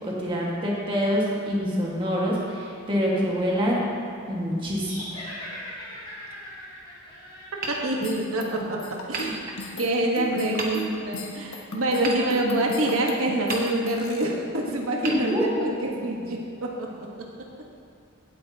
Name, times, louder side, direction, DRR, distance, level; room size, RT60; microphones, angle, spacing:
voice 1, 0.0-3.8 4.3-5.0 15.0-15.6, equal, 25° right, -4 dB, 1.6 m, -25 dB
sound 1, 4.8-8.2, left 1 dB, 25° left, 2.8 m, -40 dB
Hammer, 7.6-8.6 9.1-10.0 10.6-11.2 12.0-13.0 13.5-14.2 15.0-16.0, right 3 dB, 40° right, 1.1 m, -35 dB
voice 2, 7.7-17.1, right 1 dB, 85° right, 0 dB, 1.3 m, -26 dB
sound 2, 8.0-14.2, left 1 dB, 90° left, 1.2 m, -37 dB
17.0 x 8.4 x 2.8 m, 2.5 s
head